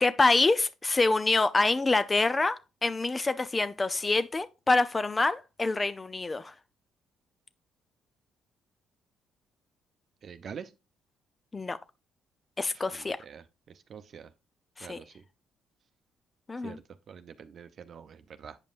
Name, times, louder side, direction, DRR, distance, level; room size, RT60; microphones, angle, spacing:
voice 1, 0.0-6.5 11.5-11.8 12.6-13.2 14.8-15.0 16.5-16.8, left 3 dB, 25° left, 0.6 m, -26 dB
voice 2, 10.2-10.7 12.9-13.4 13.9-14.3 14.8-15.2 16.6-16.8 17.1-18.6, right 7 dB, 55° right, 0.7 m, -45 dB
8.9 x 5.3 x 2.5 m
supercardioid pair, 60°, 0 cm